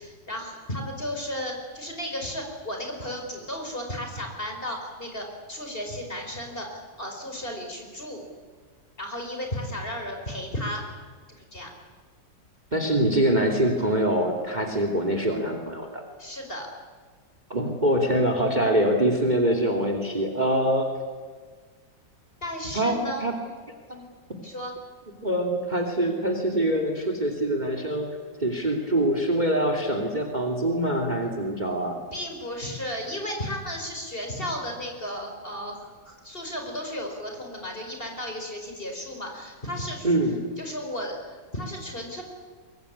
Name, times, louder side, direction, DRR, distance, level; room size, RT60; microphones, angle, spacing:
voice 1, 0.0-8.2 9.0-10.8 11.3-11.7 16.2-16.7 22.4-23.3 23.9-24.1 24.4-24.7 32.1-40.1 40.6-42.2, equal, 30° left, 2 dB, 5.2 m, -34 dB
voice 2, 12.7-16.0 17.5-20.9 22.7-23.3 25.2-28.1 28.4-32.0 40.0-40.4, right 1 dB, 25° right, 4 dB, 2.9 m, -24 dB
23.5 x 22.0 x 10.0 m, 1.5 s
omnidirectional pair, 2.0 m